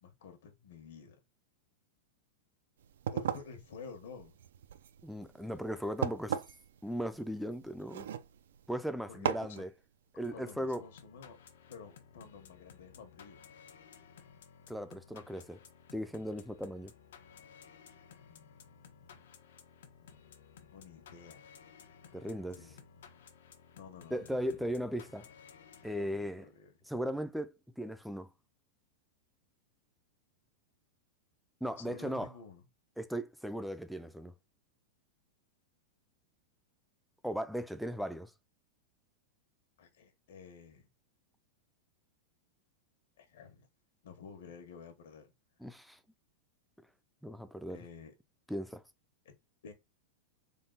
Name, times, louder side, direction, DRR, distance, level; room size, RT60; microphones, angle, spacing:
voice 1, 0.0-1.2 3.1-4.3 9.1-9.6 10.3-11.4 11.7-13.5 18.2-19.2 20.0-20.2 20.5-21.4 22.2-22.8 23.7-24.6 26.0-26.7 31.8-32.6 39.8-40.9 43.2-43.7 44.0-45.3 47.7-48.1 49.2-49.3 49.6-49.7, left 5 dB, 70° left, 1.3 m, -51 dB
sound 1, 2.8-8.7 9.3-9.6, right 9 dB, 85° right, 0.4 m, -38 dB
voice 2, 5.0-6.4 6.8-8.1 8.7-9.7 10.1-10.8 14.7-15.6 15.9-16.9 22.1-22.6 24.1-25.3 25.8-26.4 26.9-28.3 31.6-32.3 33.0-34.3 37.2-38.3 45.6-46.0 47.2-47.8 48.5-48.8, equal, ahead, 0.3 m, -37 dB
sound 2, 10.2-26.5, left 7 dB, 90° left, 0.9 m, -57 dB
3.8 x 2.3 x 4.0 m
supercardioid pair, 170°, 0 cm